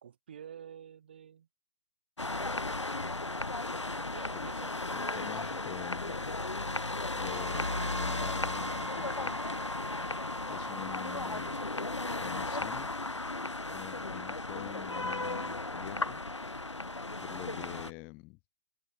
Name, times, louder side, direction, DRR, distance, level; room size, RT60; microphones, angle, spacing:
voice 1, 0.0-1.5 4.1-4.7, right 8 dB, 15° right, 6.5 m, -49 dB
sound 1, 2.2-17.9, left 2 dB, 50° left, 7.0 m, -35 dB
voice 2, 4.9-6.4 7.1-9.4 10.5-11.6 12.2-12.9 13.7-16.2 17.2-18.4, left 27 dB, 5° left, 6.8 m, -46 dB
Wind instrument woodwind instrument, 7.2-11.7, right 3 dB, 45° right, 5.1 m, -44 dB
figure-of-eight pair, 165°, 19 cm